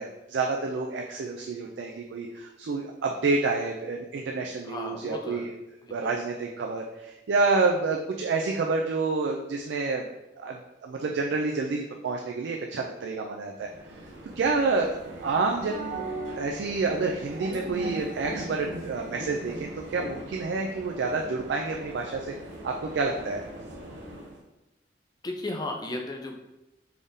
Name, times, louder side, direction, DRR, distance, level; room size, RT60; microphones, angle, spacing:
voice 1, 0.0-5.5 5.9-10.1 10.4-13.7 14.4-16.0 16.4-22.3 22.6-23.4, right 3 dB, 70° right, 1 dB, 0.3 m, -28 dB
voice 2, 4.6-5.5 25.2-26.4, left 2 dB, 20° left, 2 dB, 0.4 m, -34 dB
sound 1, 13.6-24.4, right 1 dB, 90° right, 0.7 m, -39 dB
3.5 x 3.5 x 2.6 m, 0.96 s
head